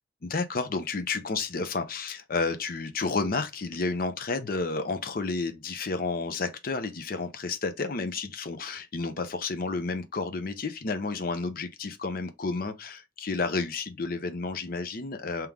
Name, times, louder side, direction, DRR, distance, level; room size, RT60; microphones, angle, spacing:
voice 1, 0.2-15.5, left 3 dB, 50° left, 0.6 m, -31 dB
3.6 x 2.9 x 3.5 m
head